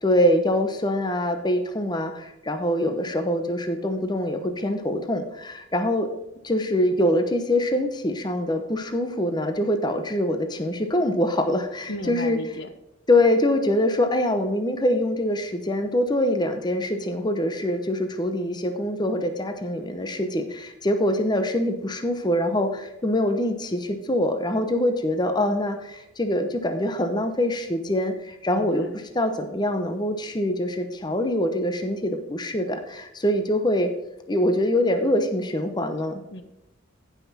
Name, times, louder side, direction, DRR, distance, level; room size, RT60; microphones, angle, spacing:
voice 1, 0.0-6.1 6.4-12.4 13.1-33.9 34.3-36.2, left 1 dB, 20° left, 7 dB, 0.8 m, -24 dB
voice 2, 11.9-12.7 28.5-29.0 36.3-36.4, left 1 dB, 60° left, 9 dB, 1.1 m, -35 dB
15.0 x 5.9 x 4.2 m, 0.94 s
head